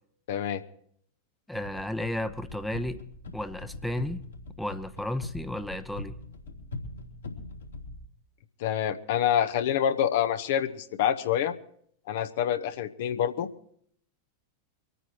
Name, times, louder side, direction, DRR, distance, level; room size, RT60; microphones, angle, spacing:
voice 1, 0.3-0.6 8.6-11.5 12.1-13.5, left 9 dB, 55° left, 9 dB, 0.9 m, -27 dB
sound 1, 1.5-8.0, left 2 dB, 75° left, 3.1 m, -41 dB
voice 2, 1.5-3.0 3.3-4.2 4.6-6.1, left 1 dB, 5° left, 10 dB, 0.8 m, -33 dB
24.0 x 9.3 x 4.6 m, 0.64 s
figure-of-eight pair, 90°, 0 cm